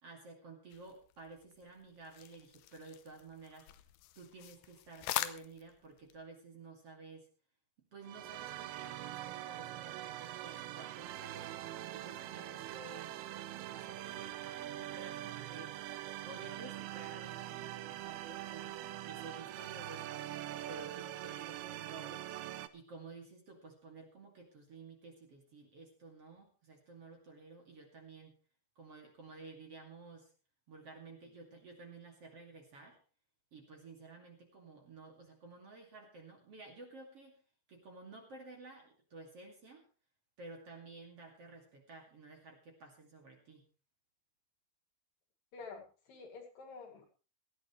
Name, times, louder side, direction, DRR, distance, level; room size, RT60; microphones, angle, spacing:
voice 1, 0.0-3.7 4.1-7.3 7.9-11.5 11.9-13.2 13.7-15.8 16.2-18.8 19.0-20.3 20.7-22.3 22.7-28.4 28.8-30.3 30.7-33.0 33.5-37.4 37.7-39.9 40.4-43.7, right 3 dB, 40° right, 1 dB, 3.0 m, -53 dB
sound 1, 0.7-6.2, left 14 dB, 90° left, 3.0 m, -44 dB
sound 2, 8.0-22.7, right 13 dB, 75° right, 2.5 m, -43 dB
voice 2, 45.5-47.1, left 4 dB, 60° left, 2 dB, 3.6 m, -49 dB
18.5 x 14.0 x 3.2 m, 0.36 s
omnidirectional pair, 4.7 m